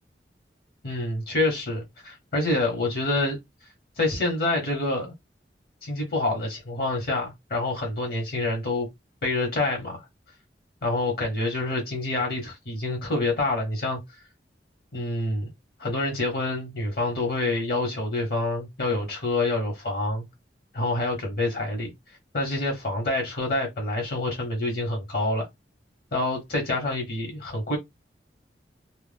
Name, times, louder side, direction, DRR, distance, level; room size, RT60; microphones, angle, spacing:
voice 1, 0.8-3.4 4.0-5.1 5.8-8.9 9.2-10.0 10.8-14.0 14.9-15.5 15.8-20.3 20.7-21.9 22.3-25.5 26.1-27.8, left 2 dB, 60° left, 1.1 m, -27 dB
2.4 x 2.1 x 3.3 m
head